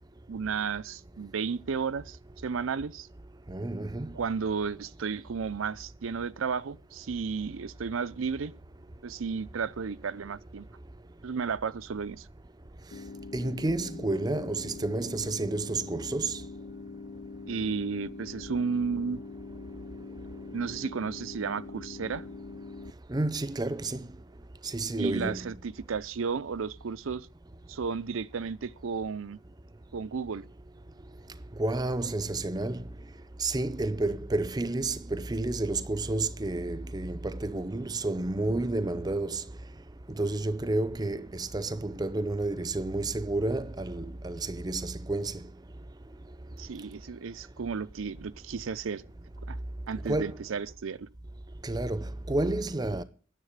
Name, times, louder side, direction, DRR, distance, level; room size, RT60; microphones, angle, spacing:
voice 1, 0.3-2.2 2.4-3.1 4.1-8.5 9.0-10.6 11.2-12.3 17.5-19.2 20.5-22.2 25.0-27.3 27.7-29.4 29.9-30.5 46.6-49.0 49.5-49.6 49.9-51.1, right 5 dB, 85° right, 0.5 m, -33 dB
voice 2, 3.5-4.1 13.3-16.4 23.1-24.1 24.6-25.5 31.6-32.8 33.4-39.4 40.1-45.4 50.1-50.4 51.6-53.0, right 2 dB, 20° right, 0.5 m, -30 dB
sound 1, 12.9-22.9, left 3 dB, 70° left, 0.6 m, -43 dB
10.0 x 7.3 x 9.3 m
head